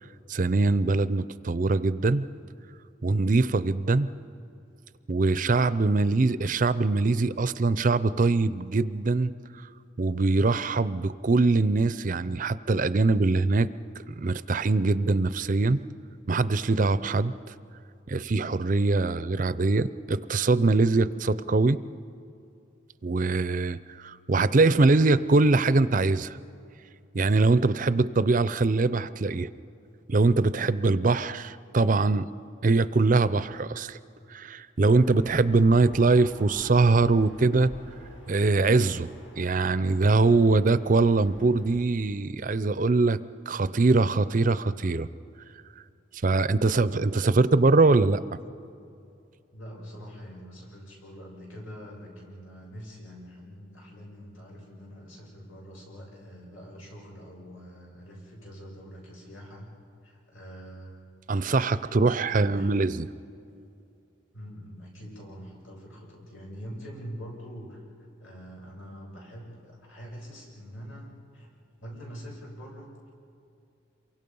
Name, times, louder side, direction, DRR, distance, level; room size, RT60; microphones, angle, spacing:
voice 1, 0.3-2.3 3.0-4.1 5.1-9.3 10.0-13.7 14.1-15.8 16.3-17.5 18.1-21.8 23.0-26.4 27.1-29.5 30.1-32.3 32.6-34.0 34.3-37.7 38.3-39.1 39.4-43.2 43.5-45.1 46.2-48.2 61.3-63.1, right 3 dB, 40° right, 15 dB, 0.5 m, -23 dB
sound 1, 34.8-41.8, equal, 75° left, 2.5 m, -48 dB
voice 2, 49.5-59.7 60.0-61.0 61.8-62.7 64.3-67.8 68.2-71.5 71.8-73.1, equal, 90° left, -2 dB, 6.9 m, -44 dB
28.0 x 24.0 x 5.4 m, 2.6 s
head